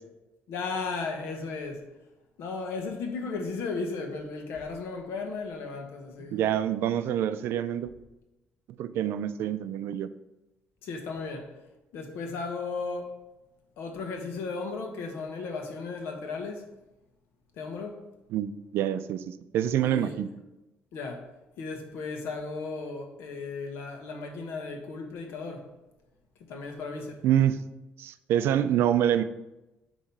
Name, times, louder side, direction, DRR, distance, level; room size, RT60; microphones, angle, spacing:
voice 1, 0.5-1.8 2.4-6.4 10.8-11.5 11.9-13.2 13.8-16.6 17.6-18.0 19.8-20.2 20.9-21.3 21.6-25.7 26.4-27.2, left 4 dB, 85° left, 1.3 m, -35 dB
voice 2, 6.3-7.9 8.8-10.1 18.3-20.3 27.2-27.7 28.0-29.2, right 10 dB, 75° right, 0.4 m, -26 dB
8.6 x 3.1 x 5.4 m
cardioid pair, 170°, 4 cm